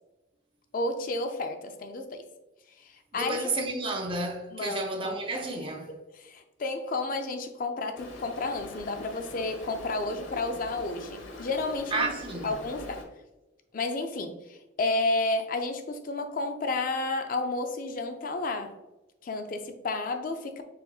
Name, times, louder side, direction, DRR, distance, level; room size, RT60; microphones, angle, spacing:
voice 1, 0.7-2.2 2.8-3.5 4.5-5.2 5.6-5.7 6.1-12.1 12.4-13.0 13.7-18.8 19.2-20.6, left 2 dB, 45° left, 0.4 m, -31 dB
voice 2, 3.1-5.9 11.9-12.5, right 2 dB, 25° right, 0.6 m, -31 dB
Stream, 7.9-13.0, left 1 dB, 80° left, 1.0 m, -43 dB
4.9 x 4.1 x 2.3 m
head